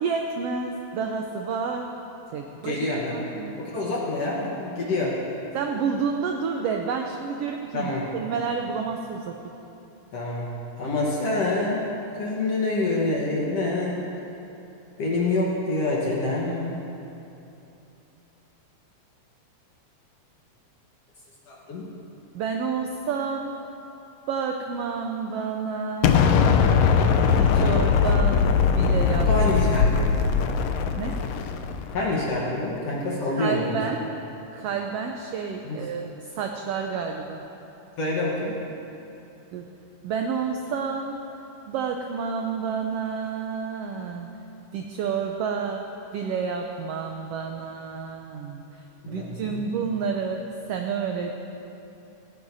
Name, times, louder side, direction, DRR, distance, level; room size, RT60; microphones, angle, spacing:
voice 1, 0.0-1.9 2.3-2.8 3.1-3.5 5.5-9.3 22.3-23.6 24.3-26.8 27.3-28.4 28.7-29.3 31.0-31.2 33.3-34.0 34.5-37.4 39.5-39.6 40.0-41.2 41.7-44.3 44.7-45.9 46.1-48.6 49.1-51.3, right 6 dB, 80° right, 3 dB, 1.4 m, -29 dB
voice 2, 2.6-3.2 3.6-5.2 7.7-8.1 10.1-10.5 10.8-11.9 12.2-14.1 15.0-16.8 21.5-21.9 29.3-30.2 31.9-33.8 35.6-35.9 38.0-38.6 49.0-49.6, left 2 dB, 60° left, -4 dB, 2.1 m, -26 dB
Explosion, 26.0-32.0, left 6 dB, 80° left, 1.5 m, -20 dB
18.0 x 14.5 x 2.7 m, 2.9 s
omnidirectional pair, 3.4 m